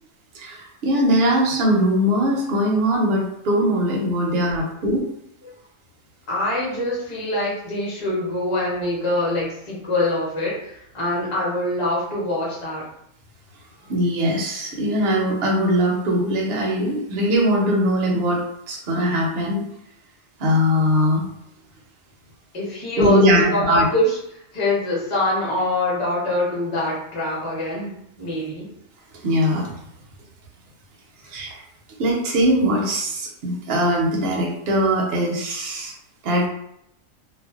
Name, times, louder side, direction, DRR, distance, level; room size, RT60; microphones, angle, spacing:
voice 1, 0.3-5.0 13.9-19.6 20.4-21.2 23.0-23.9 29.2-29.7 31.2-31.5 32.0-35.9 36.2-36.5, equal, 60° right, -2 dB, 0.7 m, -21 dB
voice 2, 6.3-12.8 22.5-28.7, left 1 dB, 30° left, -6 dB, 0.8 m, -24 dB
2.4 x 2.1 x 2.3 m, 0.76 s
omnidirectional pair, 1.4 m